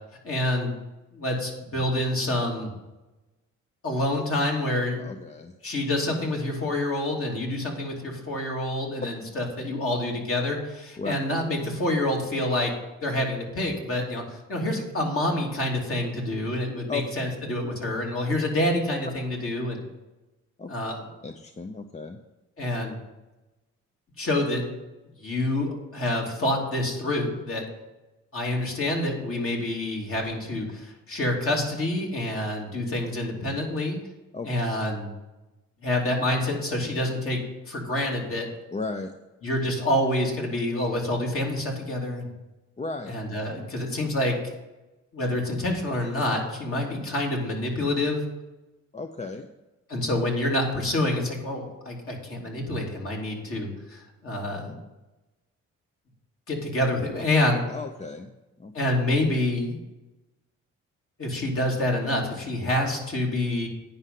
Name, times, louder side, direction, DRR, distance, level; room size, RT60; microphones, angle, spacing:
voice 1, 0.2-0.8 1.1-2.7 3.8-5.1 5.6-12.7 13.0-19.8 20.7-21.1 22.6-23.0 24.2-24.6 25.2-27.6 28.3-34.0 34.4-35.1 35.8-38.5 39.4-42.3 43.1-44.5 45.1-48.2 49.9-54.8 56.5-57.6 58.7-59.8 61.2-63.7, left 1 dB, 45° left, -1 dB, 3.1 m, -27 dB
voice 2, 5.0-5.5 11.0-11.1 16.9-17.0 20.6-20.7 21.2-22.2 34.3-34.5 38.7-39.1 42.8-43.1 48.9-49.5 57.7-58.3 58.6-58.7, left 4 dB, 25° left, 7 dB, 0.7 m, -34 dB
9.6 x 5.5 x 7.6 m, 1.0 s
cardioid pair, 90°, 30 cm